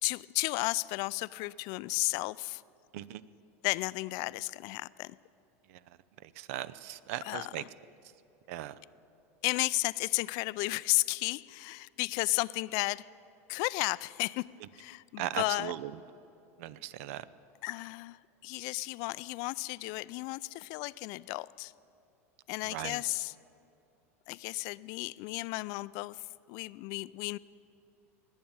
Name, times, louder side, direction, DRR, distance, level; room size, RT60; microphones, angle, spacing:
voice 1, 0.0-2.6 3.6-5.2 7.2-7.7 9.4-13.1 13.5-14.5 14.7-15.7 17.6-21.7 22.5-23.3 24.3-27.4, left 23 dB, 55° left, 19 dB, 0.3 m, -33 dB
voice 2, 6.2-7.6 8.5-8.7 15.2-15.9 16.6-17.2 22.6-23.0, right 13 dB, 70° right, 18 dB, 0.6 m, -38 dB
20.0 x 7.3 x 8.8 m, 2.8 s
supercardioid pair, 115°, 8 cm